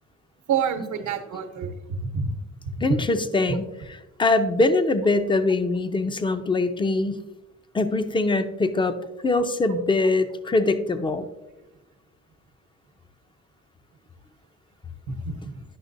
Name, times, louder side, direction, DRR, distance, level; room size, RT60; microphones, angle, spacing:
voice 1, 0.5-2.3 2.8-2.9 3.5-3.6 9.7-9.8 15.3-15.6, right 6 dB, 75° right, 6 dB, 1.0 m, -28 dB
voice 2, 2.8-3.6 4.2-7.2 7.7-8.9 9.2-11.3, left 2 dB, 15° left, 10 dB, 0.6 m, -22 dB
10.5 x 5.8 x 2.6 m, 1.0 s
cardioid pair, 90°, 30 cm